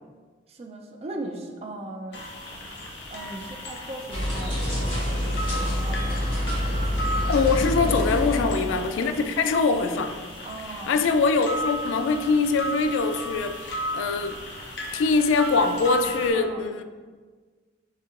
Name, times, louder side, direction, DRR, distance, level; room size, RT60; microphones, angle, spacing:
voice 1, 0.5-2.3 3.1-5.5 5.8-6.2 7.8-8.2 10.4-10.9 16.3-16.7, right 2 dB, 30° right, 2 dB, 0.4 m, -38 dB
sound 1, 2.1-16.3, equal, 65° left, 0.7 m, -35 dB
sound 2, 4.1-8.8, equal, 30° left, 1.3 m, -27 dB
voice 2, 7.3-10.2 10.9-14.4 14.9-16.8, left 4 dB, 85° left, 8 dB, 0.3 m, -23 dB
4.2 x 3.6 x 2.4 m, 1.5 s
head